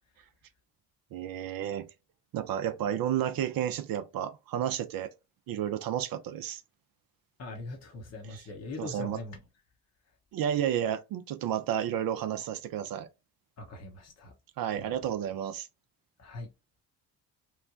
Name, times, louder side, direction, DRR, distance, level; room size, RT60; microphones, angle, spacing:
voice 1, 1.1-1.9 2.3-5.1 5.5-6.6 8.3-8.4 8.8-9.2 10.3-13.1 14.6-15.7, right 10 dB, 50° right, 0.5 m, -31 dB
voice 2, 7.4-9.4 13.6-14.3 14.7-14.9 16.2-16.5, left 2 dB, 35° left, 0.8 m, -41 dB
3.0 x 2.1 x 2.4 m
hypercardioid pair, 50°, 46 cm